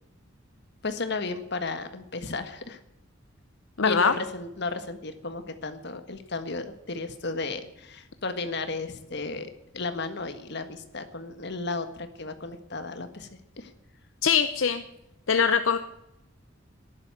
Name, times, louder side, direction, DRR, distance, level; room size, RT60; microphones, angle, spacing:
voice 1, 0.8-2.8 3.8-13.3 13.6-13.7, left 3 dB, 55° left, 9 dB, 1.6 m, -34 dB
voice 2, 3.8-4.1 14.2-14.8 15.3-15.8, left 6 dB, 75° left, 9 dB, 0.8 m, -22 dB
11.5 x 11.0 x 10.0 m, 0.84 s
head